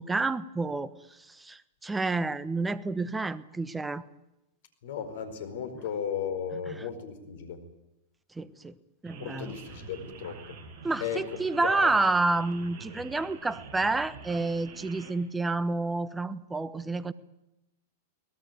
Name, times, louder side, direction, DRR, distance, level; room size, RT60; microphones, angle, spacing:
voice 1, 0.0-4.0 6.7-6.8 8.3-8.7 9.0-9.5 10.8-17.1, right 3 dB, 10° right, 16 dB, 1.1 m, -29 dB
voice 2, 4.8-7.6 9.2-10.6 11.0-11.2 11.5-11.9, left 7 dB, 65° left, 9 dB, 4.8 m, -35 dB
sound 1, 9.0-15.1, right 5 dB, 45° right, 7.2 m, -47 dB
23.0 x 19.0 x 9.4 m, 0.91 s
hypercardioid pair, 105°, 0 cm